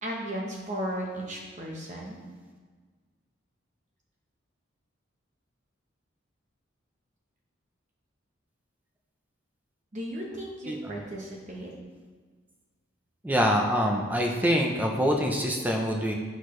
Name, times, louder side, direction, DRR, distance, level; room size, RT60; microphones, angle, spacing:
voice 1, 0.0-2.2 9.9-11.7, right 1 dB, 35° right, -2 dB, 1.0 m, -35 dB
voice 2, 13.2-16.1, equal, 10° right, 1 dB, 0.6 m, -25 dB
8.1 x 6.3 x 3.2 m, 1.5 s
head